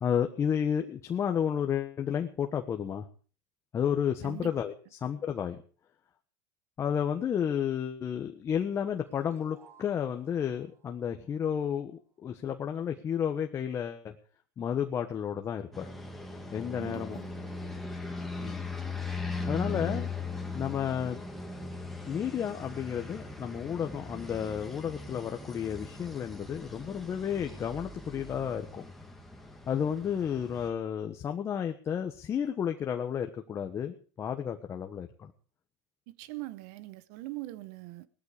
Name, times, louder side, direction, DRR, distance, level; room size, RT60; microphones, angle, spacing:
voice 1, 0.0-3.0 3.7-4.7 5.0-5.6 6.8-14.2 14.6-15.9 16.5-17.2 18.4-18.7 19.5-20.1 20.5-21.2 22.0-28.8 29.7-35.3, left 8 dB, 30° left, 1.3 m, -32 dB
sound 1, 9.1-12.3, right 4 dB, 25° right, 6.1 m, -61 dB
sound 2, 15.7-30.7, left 3 dB, ahead, 2.5 m, -39 dB
voice 2, 16.8-17.3 36.1-38.1, right 19 dB, 65° right, 1.1 m, -42 dB
18.0 x 13.5 x 5.0 m
supercardioid pair, 130°, 10 cm